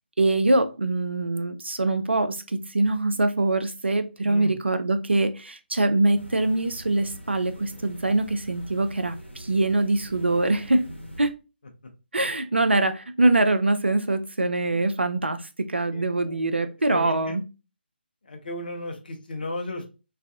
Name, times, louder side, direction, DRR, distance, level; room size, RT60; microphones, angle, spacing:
voice 1, 0.2-10.9 11.2-11.3 12.1-17.4, right 2 dB, 75° right, 0.4 m, -23 dB
voice 2, 4.3-4.6 14.7-14.8 15.9-16.4 16.9-17.3 18.2-19.9, left 1 dB, 55° left, 0.6 m, -35 dB
sound 1, 6.1-11.3, right 1 dB, 90° left, 0.8 m, -43 dB
2.4 x 2.4 x 2.4 m
figure-of-eight pair, 145°, 6 cm